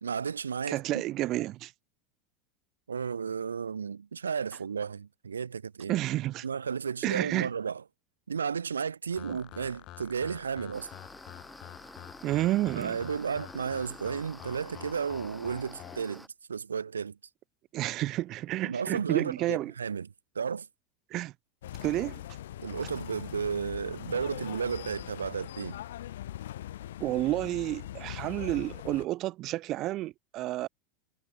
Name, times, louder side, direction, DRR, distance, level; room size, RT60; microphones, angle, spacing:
voice 1, 0.0-1.0 2.9-5.9 6.4-7.8 8.3-10.9 12.8-17.2 18.6-20.1 20.3-20.7 22.6-25.8, right 6 dB, 85° right, 0.9 m, -33 dB
voice 2, 0.7-1.7 5.9-6.4 7.0-7.5 9.3-9.4 12.2-13.0 17.7-19.7 21.1-21.3 21.8-22.2 27.0-30.7, right 16 dB, 45° right, 0.6 m, -30 dB
sound 1, 9.1-16.0, left 17 dB, 50° left, 5.6 m, -48 dB
sound 2, 10.7-16.3, equal, ahead, 4.0 m, -50 dB
sound 3, 21.6-29.1, left 13 dB, 70° left, 1.1 m, -41 dB
hypercardioid pair, 85°, 0 cm